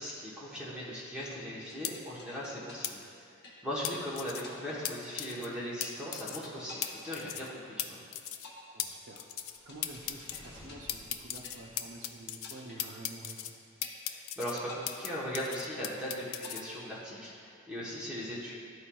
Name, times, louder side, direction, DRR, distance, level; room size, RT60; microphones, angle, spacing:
voice 1, 0.0-3.4 3.6-8.0 14.1-18.6, equal, 5° right, -8 dB, 1.0 m, -39 dB
sound 1, 1.7-4.0 4.4-5.5 5.8-6.4 6.7-8.0 8.4-12.0 12.4-13.5 13.8-14.4 14.7-16.0 16.4-17.5, left 2 dB, 50° left, 0.9 m, -52 dB
sound 2, 1.8-1.9 2.8-2.9 3.8-4.4 4.8-4.9 5.2-5.5 5.8-5.9 6.1-6.5 6.8-6.9 7.1-7.5 7.8-7.9 8.1-8.5 8.8-8.9 9.2-9.6 9.8-10.4 10.9-12.5 12.8-13.5 13.8-15.1 15.3-16.6, left 11 dB, 65° left, 0.4 m, -36 dB
voice 2, 8.7-9.3 9.6-13.5, right 1 dB, 55° right, 0 dB, 0.6 m, -49 dB
sound 3, 9.0-12.4, equal, 15° left, 1.2 m, -56 dB
11.5 x 4.3 x 2.3 m, 2.4 s
head